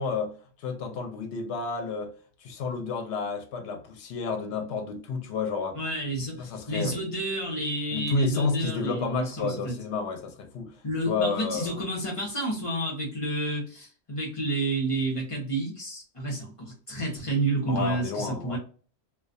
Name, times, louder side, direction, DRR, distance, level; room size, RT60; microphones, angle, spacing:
voice 1, 0.0-2.1 2.4-5.8 6.4-7.0 7.9-10.8 11.0-11.9 17.7-18.6, left 4 dB, 80° left, 0.9 m, -31 dB
voice 2, 5.7-9.7 10.8-18.6, right 1 dB, 35° left, 0.8 m, -30 dB
2.3 x 2.2 x 2.5 m
omnidirectional pair, 1.1 m